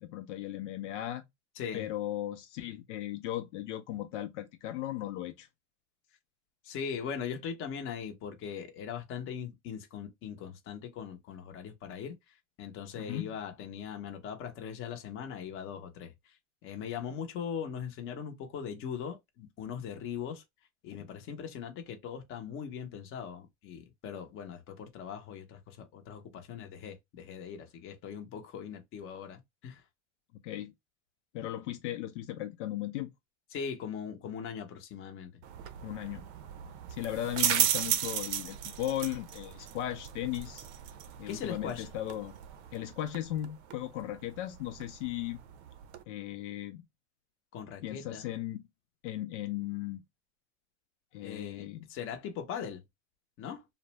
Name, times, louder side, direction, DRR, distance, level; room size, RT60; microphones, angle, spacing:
voice 1, 0.0-1.2 1.7-5.5 13.0-13.3 20.9-21.1 30.4-30.7 31.3-33.1 35.8-36.3 36.9-40.7 41.2-42.3 42.7-45.4 46.1-46.8 47.8-48.6 49.0-50.0 51.1-51.9, left 13 dB, 70° left, 0.6 m, -37 dB
voice 2, 1.6-1.9 6.6-12.1 12.6-16.4 16.6-20.4 20.8-29.8 33.5-35.3 41.3-41.9 47.5-48.3 51.2-52.8 53.4-53.7, left 7 dB, 35° left, 0.8 m, -40 dB
sound 1, 35.4-46.0, right 10 dB, 60° right, 0.6 m, -36 dB
2.5 x 2.0 x 3.0 m
supercardioid pair, 125°, 37 cm